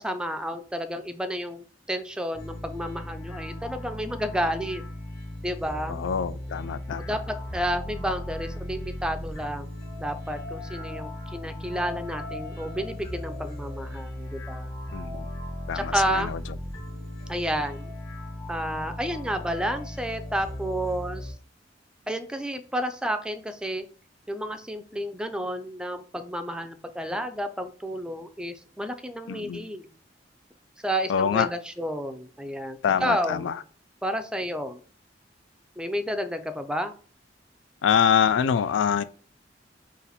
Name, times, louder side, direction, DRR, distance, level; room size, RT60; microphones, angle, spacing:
voice 1, 0.0-4.8 5.4-6.0 7.0-9.7 10.0-14.7 15.7-16.3 17.3-17.9 18.5-21.3 22.1-23.8 24.3-29.9 30.8-33.5 34.0-34.8 35.8-36.9, equal, 5° right, 0.4 m, -31 dB
sound 1, 2.3-21.3, left 1 dB, 25° left, 1.1 m, -37 dB
voice 2, 5.9-7.2 14.9-15.3 15.7-16.4 29.3-29.6 31.1-31.5 32.8-33.6 37.8-39.0, left 7 dB, 85° left, 0.3 m, -25 dB
4.1 x 2.5 x 4.0 m
head